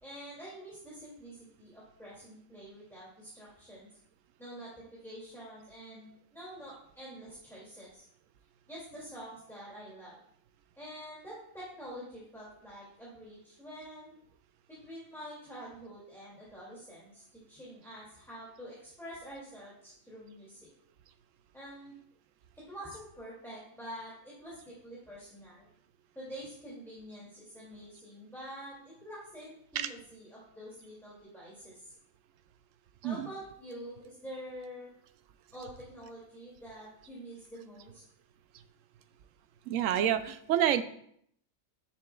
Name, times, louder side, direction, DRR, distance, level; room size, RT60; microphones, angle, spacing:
voice 1, 0.0-3.9 4.4-4.7 5.0-8.0 8.7-10.1 10.8-14.2 14.7-20.7 21.5-21.9 22.7-25.7 26.1-28.8 29.0-31.9 33.0-34.9 35.5-38.0, equal, ahead, -7 dB, 2.3 m, -47 dB
voice 2, 39.7-40.8, right 10 dB, 70° right, 11 dB, 0.9 m, -28 dB
10.5 x 7.3 x 2.3 m, 0.67 s
omnidirectional pair, 1.5 m